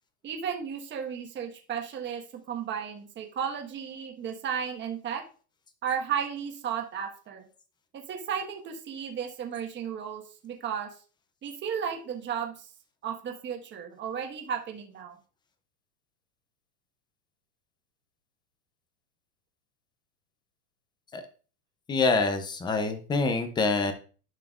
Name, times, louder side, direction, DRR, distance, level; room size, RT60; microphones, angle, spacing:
voice 1, 0.2-2.2 2.5-5.2 5.8-7.4 7.9-10.9 11.4-12.7 13.0-15.2, right 8 dB, 25° right, 2 dB, 1.4 m, -34 dB
voice 2, 21.9-23.9, left 3 dB, 10° left, 9 dB, 0.6 m, -26 dB
11.0 x 5.8 x 2.4 m, 0.38 s
supercardioid pair, 140°, 47 cm